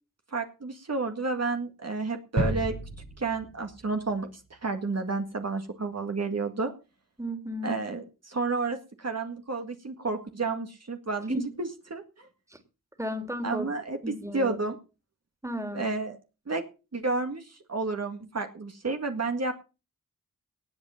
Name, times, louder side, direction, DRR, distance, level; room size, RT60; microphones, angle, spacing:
voice 1, 0.3-2.7 3.2-4.3 4.6-6.7 7.6-12.3 13.4-14.8 15.7-16.2 16.5-16.6 16.9-19.5, right 3 dB, 50° right, 5 dB, 1.9 m, -31 dB
sound 1, 2.4-4.2 4.5-4.6, right 3 dB, 75° right, 6.1 m, -32 dB
voice 2, 7.2-7.7 11.3-11.5 12.5-12.6 13.0-13.7 14.0-14.6 15.4-15.9, equal, 10° right, 7 dB, 2.8 m, -34 dB
18.5 x 8.2 x 5.7 m, 0.32 s
wide cardioid pair, 80°, 34 cm